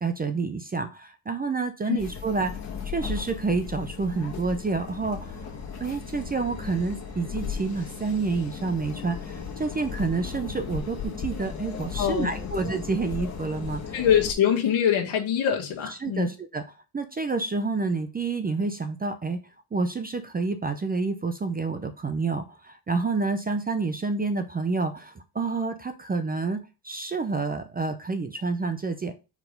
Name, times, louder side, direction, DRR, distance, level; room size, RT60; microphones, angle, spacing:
voice 1, 0.0-14.0 16.0-16.6 16.9-19.4 19.7-29.1, right 4 dB, 20° right, 0.5 m, -29 dB
sound 1, 2.0-14.3, left 6 dB, 35° left, 1.5 m, -36 dB
voice 2, 12.0-12.5 13.9-16.3, left 9 dB, 70° left, 1.8 m, -24 dB
4.8 x 3.9 x 5.1 m
cardioid pair, 115°, 48 cm